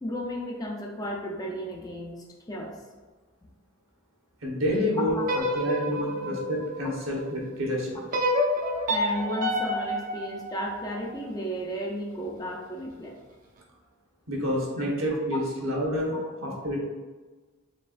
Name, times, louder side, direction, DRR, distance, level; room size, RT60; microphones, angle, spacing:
voice 1, 0.0-2.8 5.0-5.2 6.0-6.1 8.9-13.1 15.3-15.4, equal, 15° left, -1 dB, 0.4 m, -34 dB
voice 2, 4.4-8.0 14.3-16.8, equal, 75° right, -3 dB, 1.1 m, -28 dB
sound 1, 5.2-7.4 8.1-11.2, equal, 40° right, 0.5 m, -29 dB
4.4 x 3.4 x 2.4 m, 1.3 s
head